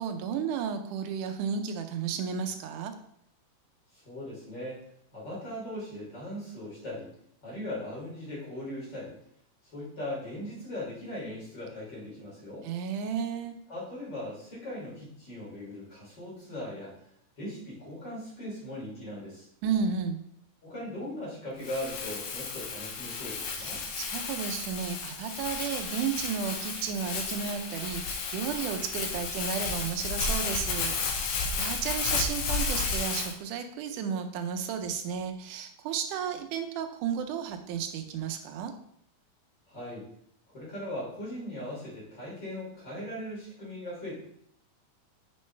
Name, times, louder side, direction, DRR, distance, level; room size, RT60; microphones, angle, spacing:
voice 1, 0.0-2.9 12.6-13.5 19.6-20.2 23.6-38.7, right 7 dB, 85° right, 7 dB, 2.2 m, -33 dB
voice 2, 3.9-4.8 5.1-7.1 7.4-9.1 9.7-12.7 13.7-16.9 17.4-19.5 20.6-23.8 39.7-40.1 40.5-44.2, left 1 dB, 35° left, -6 dB, 3.6 m, -39 dB
Crumpling crinkling, 21.6-33.3, left 4 dB, 75° left, 2.2 m, -33 dB
7.8 x 6.3 x 3.3 m, 0.71 s
omnidirectional pair, 3.5 m